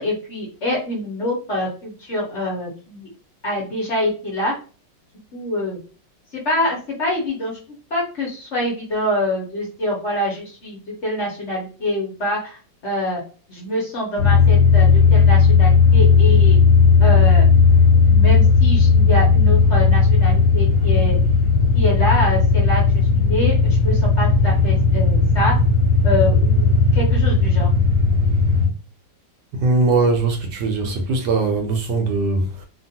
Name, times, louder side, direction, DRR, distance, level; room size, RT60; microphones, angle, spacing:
voice 1, 0.0-3.1 3.4-4.5 5.3-5.8 6.3-7.6 7.9-13.2 13.5-16.6 17.0-17.5 18.0-21.2 21.7-22.8 23.1-25.6 26.0-27.7, left 1 dB, 50° left, 1.0 m, -25 dB
sound 1, 14.2-28.7, left 4 dB, 25° right, 0.9 m, -15 dB
voice 2, 29.5-32.7, right 3 dB, 75° right, 1.2 m, -20 dB
2.9 x 2.4 x 2.7 m
omnidirectional pair, 2.0 m